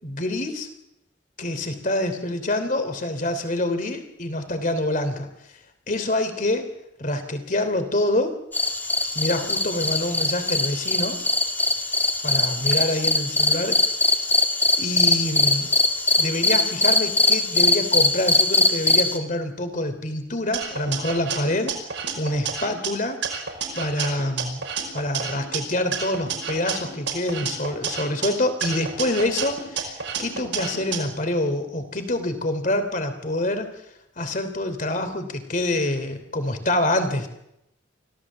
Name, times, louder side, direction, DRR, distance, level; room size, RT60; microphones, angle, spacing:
voice 1, 0.0-0.7 1.4-5.3 5.9-6.7 7.0-8.3 9.1-11.2 12.2-13.8 14.8-15.7 16.2-21.7 22.2-23.2 23.7-24.6 24.9-33.7 34.2-37.3, left 1 dB, 45° left, 9 dB, 3.1 m, -26 dB
sound 1, 8.5-19.2, left 2 dB, 10° left, 2.1 m, -21 dB
sound 2, 20.5-22.9 23.2-25.6 25.9-28.3 28.6-31.0, right 6 dB, 80° right, 5.3 m, -30 dB
25.0 x 17.0 x 7.4 m, 0.83 s
head